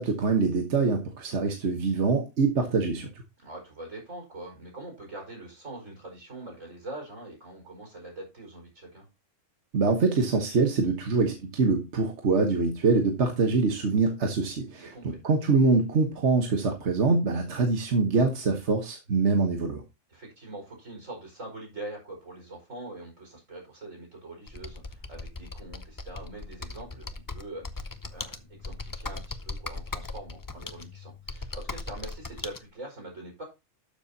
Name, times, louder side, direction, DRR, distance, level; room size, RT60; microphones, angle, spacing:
voice 1, 0.0-3.1 9.7-19.8, right 4 dB, 65° right, 3 dB, 1.5 m, -24 dB
voice 2, 3.4-9.0 14.7-15.2 20.1-33.4, right 2 dB, 85° right, 0 dB, 5.4 m, -43 dB
Computer keyboard, 24.5-32.6, left 3 dB, 25° left, 0.5 m, -39 dB
12.5 x 7.0 x 2.8 m, 0.25 s
omnidirectional pair, 1.3 m